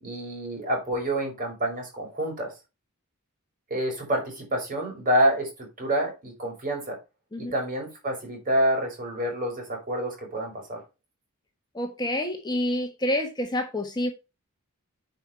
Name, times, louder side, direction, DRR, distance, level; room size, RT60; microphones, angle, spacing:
voice 1, 0.0-2.5 3.7-7.0 7.4-10.8, right 1 dB, 40° right, 5.7 m, -27 dB
voice 2, 11.7-14.1, left 1 dB, 20° left, 1.4 m, -28 dB
9.0 x 5.4 x 4.6 m
head